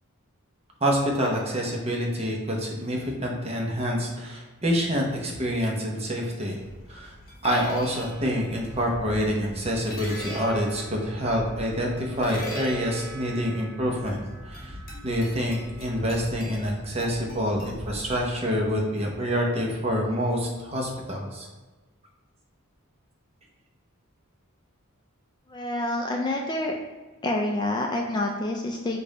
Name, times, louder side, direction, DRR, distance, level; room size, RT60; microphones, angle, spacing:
voice 1, 0.8-6.6 6.9-7.1 7.4-14.7 15.0-21.5, equal, 30° right, -1 dB, 0.8 m, -27 dB
sound 1, 6.6-18.7, equal, 45° left, 1.3 m, -40 dB
voice 2, 25.5-26.7 27.2-29.0, left 1 dB, 20° left, 1 dB, 0.3 m, -27 dB
5.1 x 2.6 x 4.0 m, 1.3 s
head